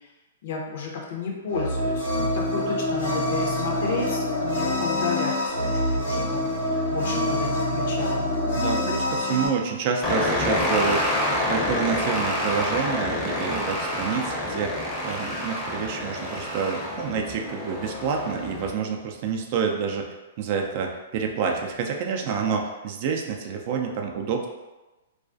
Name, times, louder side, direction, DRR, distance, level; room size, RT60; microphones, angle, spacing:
voice 1, 0.4-8.4, left 4 dB, 60° left, 0 dB, 0.6 m, -32 dB
sound 1, 1.5-9.5, left 1 dB, 90° left, 1.1 m, -26 dB
voice 2, 8.5-20.1 20.4-24.5, right 6 dB, 50° right, 2 dB, 0.3 m, -28 dB
sound 2, 10.0-18.7, left 1 dB, 15° left, 0.6 m, -27 dB
2.3 x 2.3 x 2.5 m, 1.1 s
hypercardioid pair, 135°, 0 cm